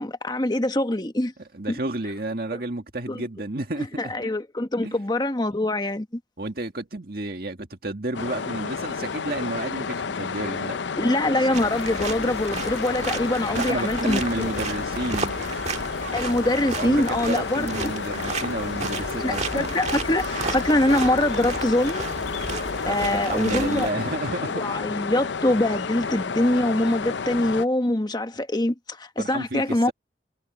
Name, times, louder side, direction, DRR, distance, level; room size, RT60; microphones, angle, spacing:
voice 1, 0.0-1.3 3.1-3.2 4.0-6.1 11.0-14.5 16.1-17.9 19.2-22.0 22.9-23.9 24.6-29.9, left 1 dB, 20° left, 1.1 m, -24 dB
voice 2, 1.5-4.1 4.8-5.0 6.4-10.8 13.5-15.4 16.7-19.7 22.8-24.8 29.2-29.9, right 2 dB, 55° right, 1.9 m, -31 dB
sound 1, 8.1-27.7, left 5 dB, 75° left, 0.6 m, -31 dB
sound 2, 11.5-23.9, right 4 dB, 35° right, 1.8 m, -33 dB
sound 3, 11.6-24.5, right 3 dB, 80° right, 1.6 m, -43 dB
head